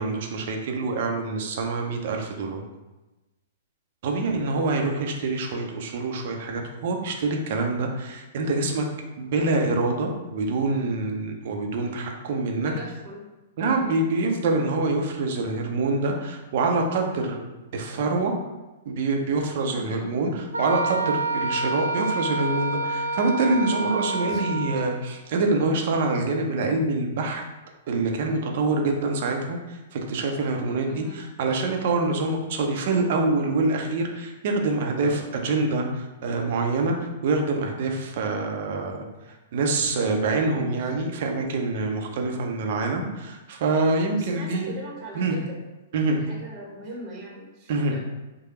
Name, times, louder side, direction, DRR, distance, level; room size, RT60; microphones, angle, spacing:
voice 1, 0.0-2.6 4.0-8.9 9.2-12.7 13.6-17.4 17.7-18.3 18.9-27.4 27.9-39.0 39.5-44.7 45.1-45.4 45.9-46.2 47.7-47.9, right 3 dB, 50° right, 2 dB, 0.7 m, -25 dB
voice 2, 4.1-4.4 12.6-13.2 13.6-13.9 19.7-20.1 24.1-24.8 30.8-31.2 44.2-45.6 46.2-48.0, right 1 dB, 30° right, -2 dB, 1.1 m, -40 dB
Wind instrument woodwind instrument, 20.5-24.9, right 2 dB, 80° right, 0.4 m, -28 dB
5.0 x 2.2 x 4.2 m, 1.1 s
figure-of-eight pair, 110°, 0 cm